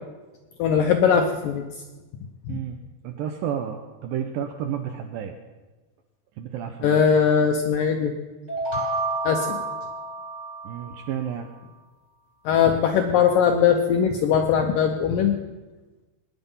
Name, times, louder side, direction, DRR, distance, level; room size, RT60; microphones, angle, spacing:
voice 1, 0.6-1.6 2.5-2.6 6.8-8.1 9.2-9.6 12.5-15.4, left 7 dB, 80° left, 4 dB, 2.0 m, -20 dB
voice 2, 2.5-2.8 3.0-5.4 6.4-7.0 10.6-11.5, right 9 dB, 80° right, 5 dB, 2.1 m, -31 dB
sound 1, 8.5-11.2, right 3 dB, 20° right, 0.9 m, -30 dB
19.0 x 10.0 x 5.5 m, 1.2 s
omnidirectional pair, 4.9 m